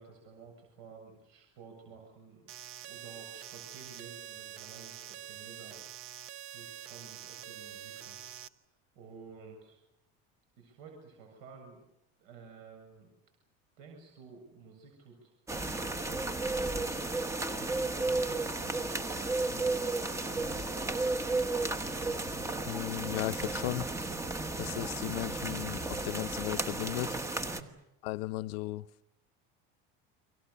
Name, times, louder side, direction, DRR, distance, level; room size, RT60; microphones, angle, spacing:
voice 1, 0.0-2.5 2.8-5.8 6.5-8.2 9.0-9.8 10.6-11.8 12.2-13.1 13.8-15.3 16.0-19.8 20.2-20.9 27.4-27.8, right 5 dB, 65° right, 7.6 m, -52 dB
sound 1, 2.5-8.5, right 12 dB, 45° right, 1.1 m, -46 dB
sound 2, 15.5-27.6, right 2 dB, 10° right, 1.2 m, -33 dB
voice 2, 22.7-23.9 24.5-27.2 28.0-28.9, left 18 dB, 90° left, 0.9 m, -36 dB
30.0 x 24.5 x 6.9 m
cardioid pair, 165°, 29 cm